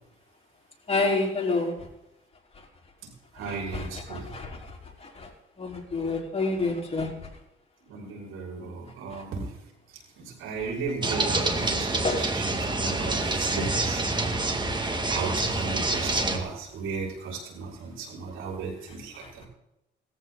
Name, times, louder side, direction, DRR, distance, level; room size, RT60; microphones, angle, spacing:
voice 1, 0.9-1.9 2.5-2.7 3.4-5.3 5.6-7.1 9.1-9.2 10.6-10.7 11.3-11.4 12.0-12.3 19.1-19.5, left 3 dB, 30° left, 0 dB, 4.6 m, -29 dB
voice 2, 3.3-4.3 7.9-9.6 9.9-14.4 14.7-19.5, right 4 dB, 90° right, -1 dB, 6.1 m, -35 dB
sound 1, 11.0-16.4, right 2 dB, 20° right, 2.6 m, -27 dB
18.5 x 14.5 x 4.2 m, 0.86 s
cardioid pair, 90°, 20 cm